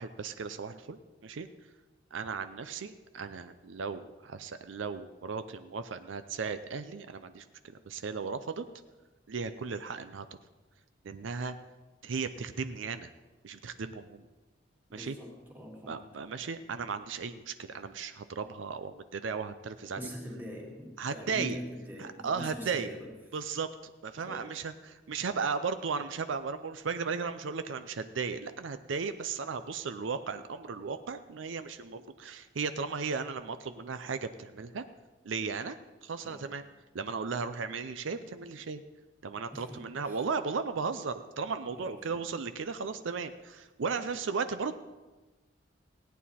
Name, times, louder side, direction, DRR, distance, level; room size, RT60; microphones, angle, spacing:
voice 1, 0.0-1.5 2.1-7.4 7.9-8.6 9.3-10.3 11.0-11.6 12.0-13.1 13.4-14.2 14.9-15.2 15.9-20.0 21.0-21.6 22.0-22.9 23.3-34.8 35.2-36.6 36.9-38.8 39.2-44.8, right 5 dB, 80° right, 10 dB, 0.5 m, -36 dB
voice 2, 14.9-16.1 19.9-23.1 24.2-24.6 36.2-36.6 39.5-40.3 41.8-42.2, equal, 10° right, -2 dB, 2.2 m, -43 dB
17.0 x 9.2 x 4.2 m, 1.2 s
head